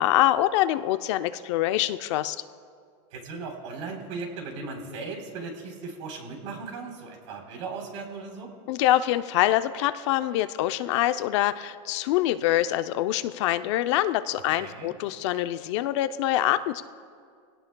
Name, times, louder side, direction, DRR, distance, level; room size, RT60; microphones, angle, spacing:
voice 1, 0.0-2.4 8.7-16.8, left 14 dB, 60° left, 11 dB, 0.6 m, -25 dB
voice 2, 3.1-8.5 14.5-14.9, right 4 dB, 70° right, 2 dB, 3.7 m, -37 dB
23.5 x 17.5 x 2.3 m, 2.2 s
supercardioid pair, 150°, 16 cm